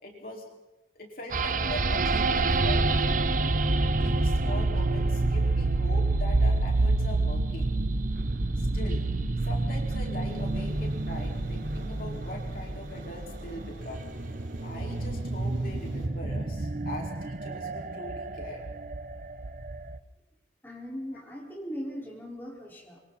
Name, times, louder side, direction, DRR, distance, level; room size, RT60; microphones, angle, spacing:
voice 1, 0.0-0.4 0.9-3.2 3.9-7.7 8.6-9.1 9.4-14.0 14.6-18.7 21.1-21.2, left 1 dB, 50° left, -1 dB, 4.8 m, -41 dB
sound 1, 1.3-20.0, right 2 dB, 45° right, 0.9 m, -28 dB
sound 2, 10.2-16.1, equal, 85° right, 5.1 m, -50 dB
voice 2, 20.6-23.0, equal, 10° left, -3 dB, 4.7 m, -39 dB
26.5 x 24.5 x 4.2 m, 1.1 s
head